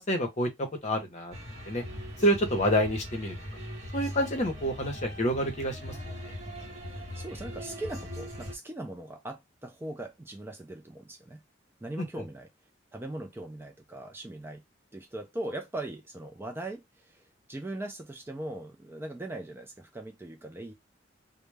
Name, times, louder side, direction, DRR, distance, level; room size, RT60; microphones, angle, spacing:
voice 1, 0.0-1.3 1.7-1.8 2.2-3.4 3.9-6.4 12.0-12.1, equal, 40° left, 0.7 m, -28 dB
sound 1, 1.3-8.6, equal, 35° right, 0.9 m, -40 dB
voice 2, 6.9-11.4 11.8-12.5 12.9-14.6 14.9-17.2 17.5-20.7, right 1 dB, 10° right, 0.3 m, -40 dB
2.2 x 2.0 x 3.1 m
head